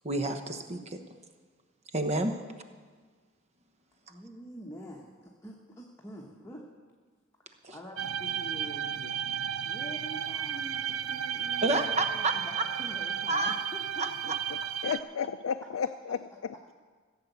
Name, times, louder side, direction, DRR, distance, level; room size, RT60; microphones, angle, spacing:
voice 1, 0.0-1.0 1.9-2.4 7.6-7.7 11.6-12.3 13.3-13.5 14.0-14.1, right 2 dB, 35° right, 7 dB, 1.0 m, -29 dB
voice 2, 4.1-6.7 7.7-9.0 9.6-14.3 16.3-16.4, equal, 15° left, -2 dB, 1.2 m, -46 dB
sound 1, 8.0-15.0, right 9 dB, 80° right, 0.4 m, -33 dB
voice 3, 14.5-16.7, left 6 dB, 90° left, 8 dB, 0.4 m, -34 dB
16.0 x 7.2 x 8.1 m, 1.5 s
head